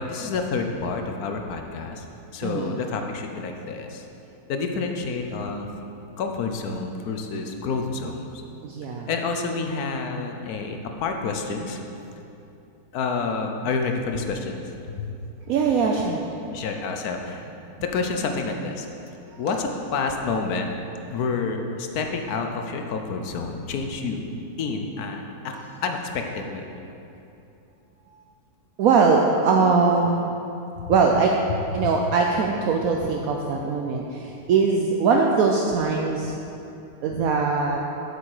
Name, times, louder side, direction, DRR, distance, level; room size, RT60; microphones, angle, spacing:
voice 1, 0.0-2.0 2.3-4.1 4.5-5.7 6.2-8.3 9.1-11.8 12.9-14.6 15.0-15.1 16.5-17.4 17.8-18.9 19.4-20.7 21.1-24.2 24.6-26.6, left 4 dB, 70° left, 4 dB, 1.2 m, -28 dB
voice 2, 2.4-2.8 8.6-9.1 15.5-16.2 19.3-19.4 25.5-25.6 28.8-30.3 30.9-31.3 31.7-36.4 37.0-37.8, right 4 dB, 70° right, 1 dB, 1.0 m, -21 dB
8.5 x 7.0 x 4.8 m, 2.8 s
omnidirectional pair, 1.7 m